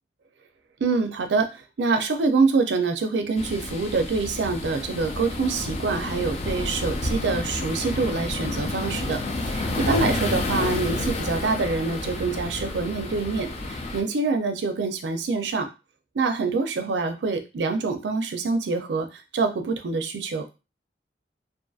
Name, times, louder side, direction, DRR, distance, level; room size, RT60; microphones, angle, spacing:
voice 1, 0.8-15.7 16.1-20.4, right 4 dB, 80° right, 6 dB, 0.4 m, -25 dB
sound 1, 3.4-14.0, left 2 dB, 35° left, 0.4 m, -30 dB
2.6 x 2.5 x 2.3 m, 0.28 s
head